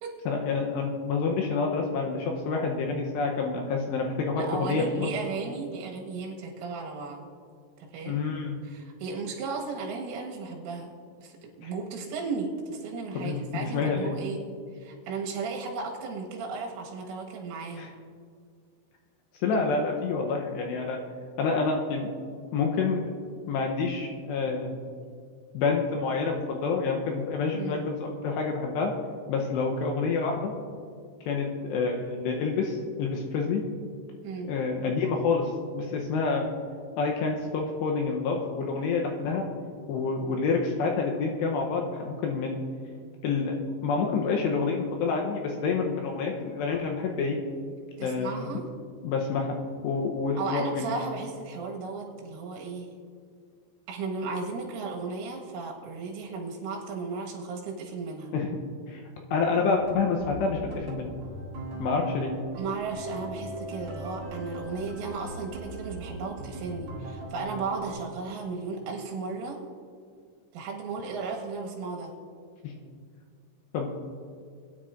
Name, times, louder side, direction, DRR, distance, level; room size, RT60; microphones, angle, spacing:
voice 1, 0.3-5.1 8.1-8.6 11.6-11.7 13.1-14.1 17.8-17.9 19.4-21.0 21.4-22.1 22.5-23.1 23.5-24.8 25.5-28.9 29.3-30.5 31.3-33.6 34.4-36.5 37.0-39.5 39.9-42.6 43.2-47.4 48.0-48.5 49.0-49.6 49.8-51.0 58.3-58.6 58.9-59.0 59.3-61.1 61.8-62.3 72.6-72.7 73.7-73.9, left 4 dB, 80° left, 1 dB, 2.7 m, -28 dB
voice 2, 4.4-7.3 7.9-8.2 8.6-10.9 11.2-14.4 14.7-17.9 27.5-27.8 34.2-34.5 48.0-48.6 50.4-53.0 53.9-58.3 62.6-69.6 70.5-72.1, right 4 dB, 85° right, -1 dB, 4.1 m, -35 dB
sound 1, 59.7-67.9, right 2 dB, 55° right, 4.0 m, -39 dB
21.0 x 10.0 x 2.5 m, 2.1 s
omnidirectional pair, 5.6 m